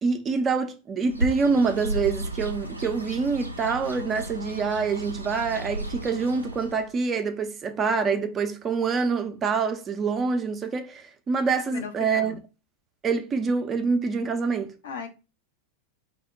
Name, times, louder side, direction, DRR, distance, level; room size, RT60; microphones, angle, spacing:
voice 1, 0.0-12.3 13.0-14.7, right 5 dB, 25° right, 0.4 m, -26 dB
Bird, 1.0-6.9, right 1 dB, 85° right, 0.3 m, -34 dB
voice 2, 11.7-12.4 14.8-15.1, left 6 dB, 60° left, 0.5 m, -37 dB
2.1 x 2.1 x 3.6 m
figure-of-eight pair, 90°, 0 cm